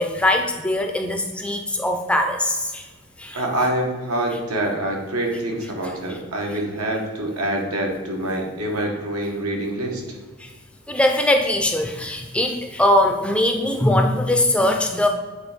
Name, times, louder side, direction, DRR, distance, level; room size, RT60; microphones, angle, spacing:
voice 1, 0.0-2.9 3.2-3.4 5.8-5.9 10.4-10.5 10.9-15.1, left 1 dB, 5° left, 4 dB, 0.4 m, -21 dB
voice 2, 3.3-10.0, right 1 dB, 85° right, 0 dB, 1.6 m, -25 dB
8.1 x 3.5 x 5.1 m, 1.3 s
head